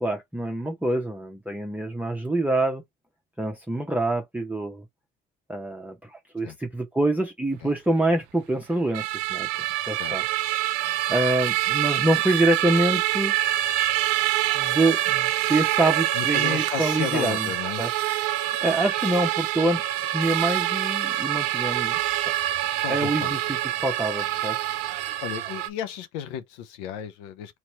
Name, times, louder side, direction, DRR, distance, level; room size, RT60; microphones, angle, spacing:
voice 1, 0.0-2.8 3.4-4.8 5.5-9.5 9.9-10.2 10.7-13.4 14.5-17.5 17.8-17.9 18.4-22.0 22.9-23.6 23.8-24.7, right 1 dB, 5° right, 0.7 m, -26 dB
sound 1, 8.9-25.7, right 15 dB, 85° right, 0.6 m, -26 dB
voice 2, 16.1-17.8 22.8-23.5 25.2-27.6, left 9 dB, 85° left, 0.6 m, -34 dB
3.0 x 2.9 x 4.4 m
supercardioid pair, 65°, 33 cm